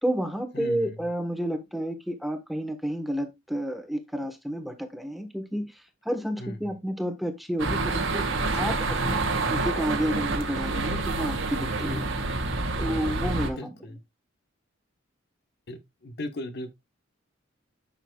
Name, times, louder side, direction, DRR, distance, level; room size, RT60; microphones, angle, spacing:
voice 1, 0.0-5.7 6.0-8.2 8.5-12.1 12.8-13.8, equal, ahead, 1.3 m, -30 dB
voice 2, 0.5-1.0 6.4-6.7 8.4-9.4 13.6-14.0 15.7-16.7, left 1 dB, 55° left, 1.2 m, -38 dB
sound 1, 7.6-13.5, right 3 dB, 90° right, 1.8 m, -28 dB
11.0 x 6.8 x 2.3 m
head